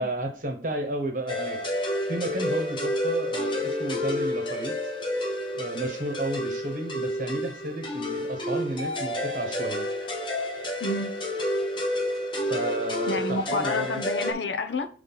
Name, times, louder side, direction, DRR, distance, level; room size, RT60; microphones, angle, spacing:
voice 1, 0.0-1.6 2.1-4.8 5.5-9.9 12.5-14.0, right 1 dB, 50° right, 1.1 m, -32 dB
sound 1, 1.3-14.3, left 1 dB, 25° left, 1.0 m, -30 dB
voice 2, 13.1-14.9, left 3 dB, 85° left, 0.7 m, -29 dB
6.0 x 3.3 x 5.6 m
head